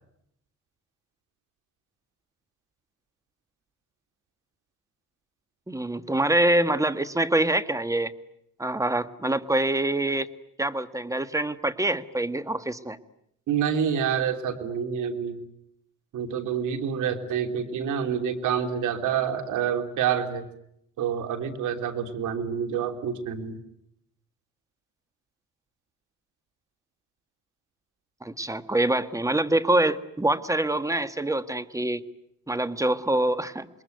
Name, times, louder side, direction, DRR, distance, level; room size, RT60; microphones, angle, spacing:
voice 1, 5.7-8.1 8.6-10.3 10.6-13.0 28.2-32.0 32.5-33.7, right 1 dB, 10° right, 12 dB, 1.6 m, -25 dB
voice 2, 13.5-15.4 16.1-20.5 21.0-23.6, right 8 dB, 80° right, 6 dB, 3.3 m, -27 dB
27.5 x 22.0 x 9.4 m, 0.76 s
cardioid pair, 90°, 30 cm